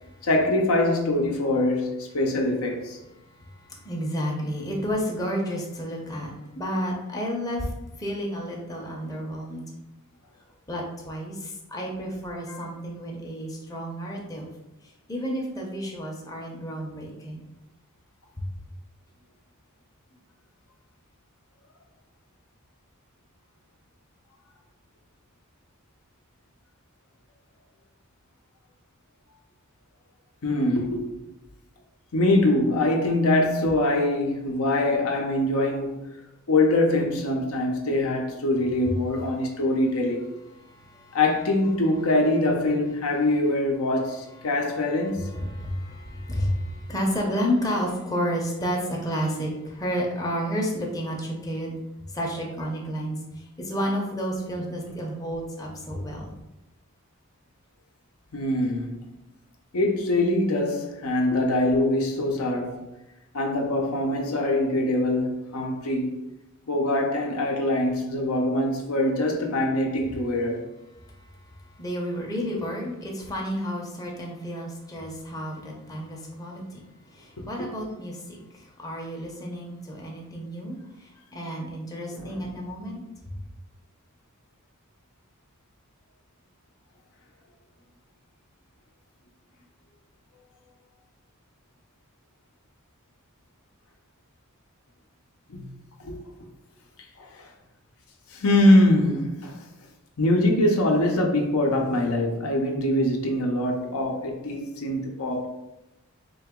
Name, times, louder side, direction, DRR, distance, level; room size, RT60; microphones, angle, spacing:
voice 1, 0.2-3.0 12.5-12.7 30.4-31.1 32.1-36.1 36.5-40.3 41.1-45.3 58.3-59.0 59.7-62.9 63.3-66.1 66.7-70.7 77.6-77.7 82.1-82.4 95.5-95.7 96.0-96.2 97.2-97.5 98.3-99.6 100.2-105.5, left 1 dB, 75° left, 0.7 m, -23 dB
voice 2, 3.2-7.7 8.0-9.6 10.7-14.5 15.1-17.4 18.4-18.5 38.9-39.0 40.5-41.2 44.4-44.8 45.3-51.7 52.1-56.4 71.0-83.4, equal, 15° left, 0.6 m, -31 dB
3.8 x 2.9 x 3.6 m
head